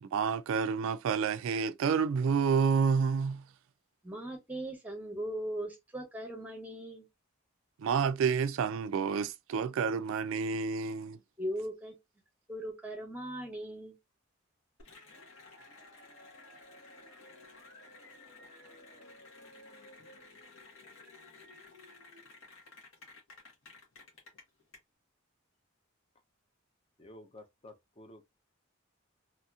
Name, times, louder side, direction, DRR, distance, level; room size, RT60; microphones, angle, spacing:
voice 1, 0.0-3.4 7.8-11.2, right 6 dB, 70° right, 0.3 m, -29 dB
voice 2, 4.0-7.1 11.4-11.9 12.5-14.0, right 1 dB, 5° right, 0.9 m, -39 dB
Cheering / Applause, 14.8-24.8, left 2 dB, 75° left, 1.3 m, -54 dB
voice 3, 27.0-28.2, left 1 dB, 25° left, 0.6 m, -52 dB
3.0 x 2.8 x 2.4 m
head